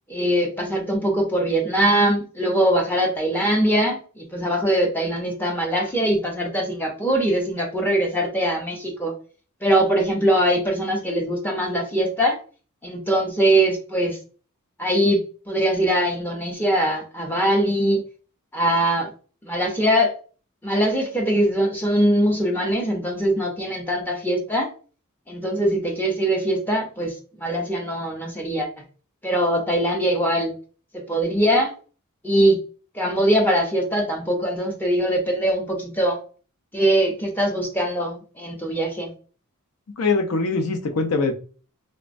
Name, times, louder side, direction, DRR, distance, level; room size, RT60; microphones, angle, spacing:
voice 1, 0.1-9.1 9.6-12.4 12.8-14.2 14.8-18.0 18.5-19.1 19.5-20.1 20.6-24.7 25.3-28.7 29.2-30.5 31.1-31.7 32.2-32.6 32.9-36.2 36.7-39.1, right 1 dB, 10° left, 0.5 m, -22 dB
voice 2, 40.0-41.3, left 3 dB, 70° left, 0.5 m, -22 dB
3.3 x 2.1 x 2.5 m
head